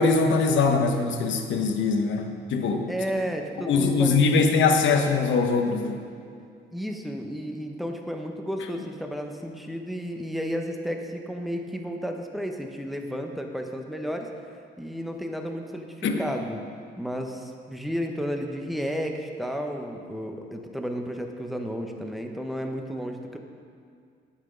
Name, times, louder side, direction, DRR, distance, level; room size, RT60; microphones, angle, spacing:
voice 1, 0.0-2.9 3.7-6.0 16.0-16.3, left 4 dB, 75° left, 5 dB, 1.1 m, -22 dB
voice 2, 2.9-4.2 6.7-14.3 14.8-16.6 17.0-23.4, equal, ahead, 3 dB, 1.1 m, -32 dB
10.0 x 8.4 x 5.2 m, 2.3 s
cardioid pair, 90°, 20 cm